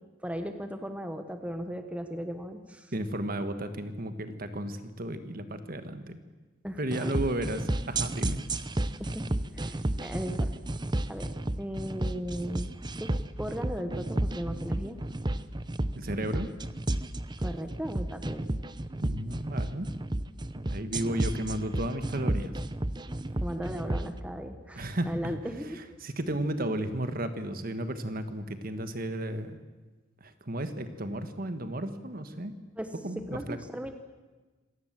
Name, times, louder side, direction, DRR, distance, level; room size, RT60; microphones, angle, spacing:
voice 1, 0.2-2.9 6.6-7.2 9.0-10.5 11.1-11.3 11.6-12.7 13.0-13.1 13.4-15.0 17.4-18.5 23.4-25.8 32.8-33.9, equal, 5° right, 7 dB, 1.2 m, -37 dB
voice 2, 2.9-6.2 6.8-8.4 15.9-16.5 19.0-19.9 20.7-22.5 24.7-25.3 26.0-29.5 30.2-32.5 33.0-33.6, right 1 dB, 45° right, 9 dB, 1.6 m, -33 dB
sound 1, 6.9-24.1, right 1 dB, 20° right, 0.7 m, -32 dB
26.5 x 18.0 x 7.6 m, 1.3 s
head